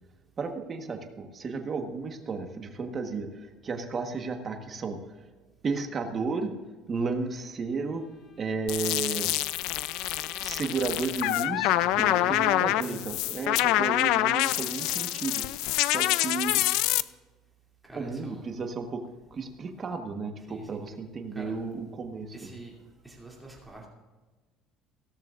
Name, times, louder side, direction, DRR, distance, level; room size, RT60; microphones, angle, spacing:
voice 1, 0.4-5.3 5.6-6.5 6.9-8.0 8.4-9.3 10.4-16.6 17.9-19.0 19.3-22.5, right 4 dB, 25° right, 5 dB, 1.2 m, -33 dB
Bowed string instrument, 7.9-10.9, left 6 dB, 40° left, 1.0 m, -51 dB
sound 1, 8.7-17.0, left 16 dB, 65° left, 0.4 m, -26 dB
voice 2, 11.8-13.4 17.8-18.4 20.4-20.8 21.3-21.5 22.3-22.7 23.0-23.9, right 2 dB, ahead, -3 dB, 2.7 m, -44 dB
16.5 x 13.5 x 2.5 m, 1.3 s
cardioid pair, 180°, 0 cm